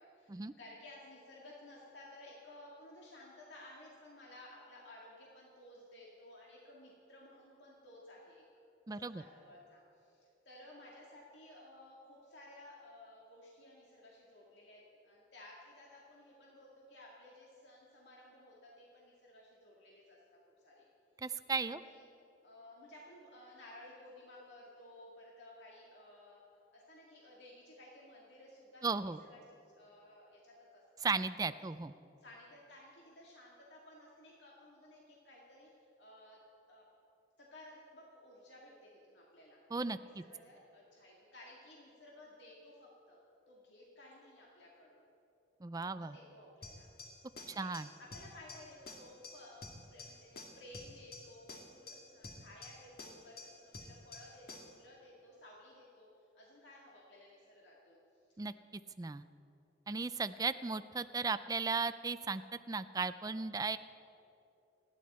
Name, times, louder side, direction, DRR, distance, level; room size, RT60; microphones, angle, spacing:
voice 1, 0.0-8.4 8.9-20.2 20.6-20.9 21.7-22.1 22.4-26.4 26.7-31.2 31.6-31.7 32.2-36.4 36.7-36.8 37.4-39.6 40.0-43.2 43.5-45.0 45.8-46.9 47.5-47.7 48.0-56.1 56.3-58.0, left 1 dB, 70° left, -4 dB, 2.2 m, -56 dB
voice 2, 8.9-9.2 21.2-21.8 28.8-29.2 31.0-31.9 39.7-40.2 45.6-46.2 47.5-47.9 58.4-58.5 59.0-59.2 59.9-62.4 62.7-63.8, right 4 dB, 20° right, 12 dB, 0.4 m, -36 dB
sound 1, 46.6-54.8, left 2 dB, 55° left, 1.8 m, -51 dB
29.0 x 10.5 x 4.3 m, 2.8 s
head